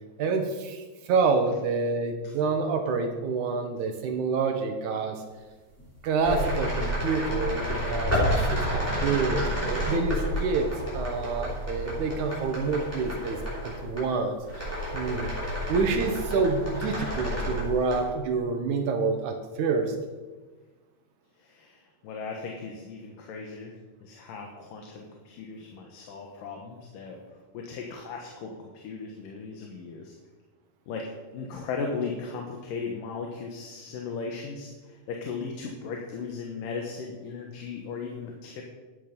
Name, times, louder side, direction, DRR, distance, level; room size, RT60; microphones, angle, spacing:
voice 1, 0.2-5.2 6.0-13.4 13.6-15.3 15.7-20.0, right 4 dB, 70° right, 5 dB, 2.4 m, -28 dB
sound 1, 5.8-5.9 6.2-14.1 14.4-18.1, equal, 5° left, 4.8 m, -30 dB
voice 2, 21.4-23.8 24.0-30.2 30.9-38.6, left 4 dB, 80° left, 1 dB, 2.9 m, -37 dB
13.0 x 9.3 x 5.3 m, 1.3 s
omnidirectional pair, 3.8 m